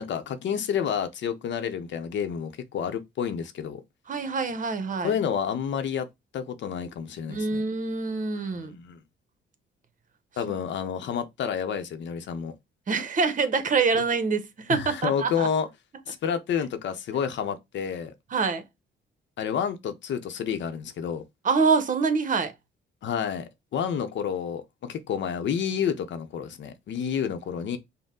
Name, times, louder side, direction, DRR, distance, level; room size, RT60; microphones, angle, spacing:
voice 1, 0.0-3.8 5.0-6.1 6.3-7.6 8.4-9.0 10.4-12.6 13.9-14.0 14.7-15.7 16.1-18.1 19.4-21.2 23.0-27.8, left 8 dB, 65° left, 0.8 m, -29 dB
voice 2, 4.1-5.1 7.3-8.7 12.9-15.5 18.3-18.6 21.4-22.5, right 4 dB, 40° right, 0.9 m, -25 dB
5.3 x 2.2 x 3.7 m
cardioid pair, 90°, 20 cm